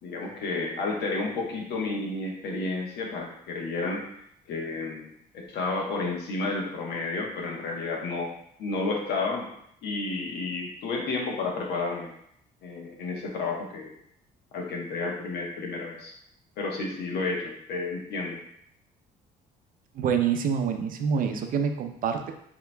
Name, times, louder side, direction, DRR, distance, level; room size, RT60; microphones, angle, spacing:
voice 1, 0.0-4.1 4.5-8.3 8.6-9.5 9.8-12.1 12.6-13.9 14.5-16.1 16.6-18.4, left 3 dB, 75° left, 0 dB, 1.1 m, -31 dB
voice 2, 20.0-22.3, right 7 dB, 55° right, 6 dB, 0.6 m, -26 dB
6.9 x 2.9 x 2.2 m, 0.71 s
cardioid pair, 110°, 17 cm